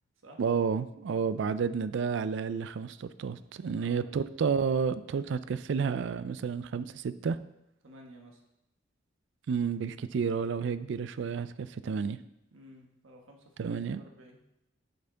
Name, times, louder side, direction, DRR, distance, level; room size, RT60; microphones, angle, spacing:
voice 1, 0.4-7.4 9.5-12.2 13.6-14.0, right 6 dB, 60° right, 14 dB, 0.3 m, -31 dB
voice 2, 3.7-4.1 7.8-8.4 12.5-14.4, equal, 80° right, 1 dB, 1.3 m, -53 dB
8.0 x 5.6 x 3.9 m, 0.86 s
head